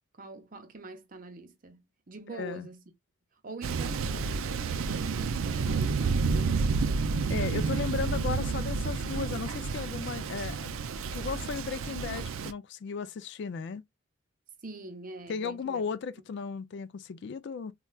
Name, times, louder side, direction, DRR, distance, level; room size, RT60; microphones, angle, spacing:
voice 1, 0.1-2.9 3.3-7.1 14.6-15.8 16.2-16.3, right 2 dB, 40° right, 0.7 m, -45 dB
voice 2, 2.3-2.7 7.3-10.7 11.1-13.8 15.3-17.7, left 5 dB, 55° left, 0.3 m, -35 dB
Thunder, 3.6-12.5, right 4 dB, 75° right, 0.4 m, -30 dB
4.2 x 2.3 x 2.3 m
head